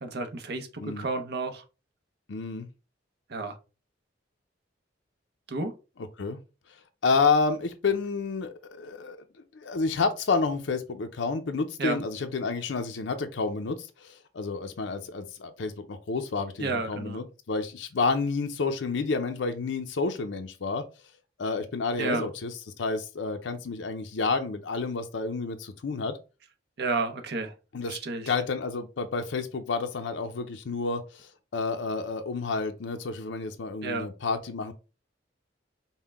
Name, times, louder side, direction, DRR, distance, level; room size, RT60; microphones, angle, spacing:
voice 1, 0.0-0.7 1.0-1.6 3.3-3.6 5.5-5.7 11.8-12.0 16.6-17.2 22.0-22.3 26.8-27.5 27.9-28.3 33.8-34.1, right 3 dB, 60° right, 0.8 m, -31 dB
voice 2, 2.3-2.7 6.2-6.4 7.0-9.2 9.5-20.8 21.4-26.2 27.7-28.0 28.3-34.7, left 4 dB, 85° left, 0.5 m, -30 dB
5.5 x 2.2 x 3.4 m
head